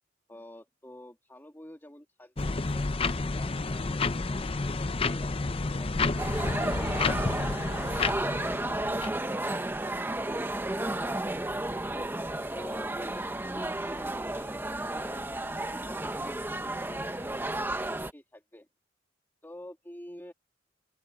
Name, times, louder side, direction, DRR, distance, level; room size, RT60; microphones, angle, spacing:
voice 1, 0.3-2.9 3.3-4.5 5.1-7.1 7.4-7.7 8.3-12.1 12.5-14.5 14.9-17.8 18.1-18.6 19.4-20.3, left 1 dB, 10° left, 2.5 m, -49 dB
sound 1, 2.4-9.2, left 3 dB, 30° left, 0.6 m, -30 dB
sound 2, 6.2-18.1, right 1 dB, 10° right, 0.9 m, -33 dB
open air
head